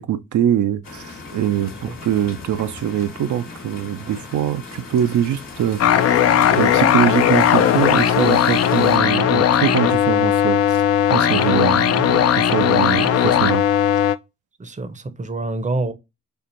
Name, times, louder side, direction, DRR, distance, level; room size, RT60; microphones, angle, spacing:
voice 1, 0.0-5.8 6.5-10.8 11.1-13.6, right 10 dB, 60° right, 0.5 m, -23 dB
sound 1, 0.8-9.0, left 4 dB, 70° left, 1.2 m, -37 dB
sound 2, 5.8-14.1, left 9 dB, 45° left, 0.4 m, -17 dB
voice 2, 14.6-15.9, right 2 dB, 20° right, 0.6 m, -27 dB
4.4 x 2.4 x 2.5 m
supercardioid pair, 45°, 34 cm